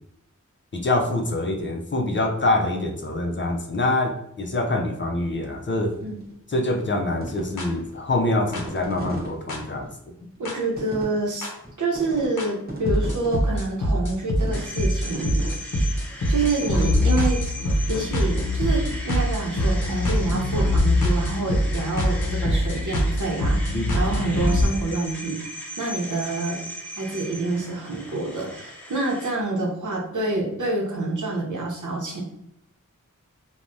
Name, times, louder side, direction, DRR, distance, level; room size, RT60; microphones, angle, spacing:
voice 1, 0.7-6.0 6.5-9.9 23.7-23.9, left 2 dB, 40° left, 3 dB, 0.4 m, -25 dB
sound 1, 5.8-6.3 6.7-9.3 9.8-9.9 10.4-10.5 10.8-11.7 11.9-12.3 12.6-13.8 14.4-14.8 15.0-15.5 15.9-18.0, right 1 dB, 30° right, 0.9 m, -36 dB
sound 2, 7.6-7.7 8.5-8.6 9.5-9.6 10.5-10.6 11.4-11.5 12.4-12.5 12.9-24.7, left 1 dB, 75° left, 0.7 m, -23 dB
voice 2, 10.4-11.5 11.8-15.4 16.3-17.4 17.9-25.5 25.8-26.6 27.0-32.2, right 2 dB, 70° right, -2 dB, 0.8 m, -27 dB
sound 3, 14.5-29.3, left 1 dB, 5° left, 0.7 m, -38 dB
3.2 x 2.1 x 2.5 m, 0.81 s
wide cardioid pair, 65°, 31 cm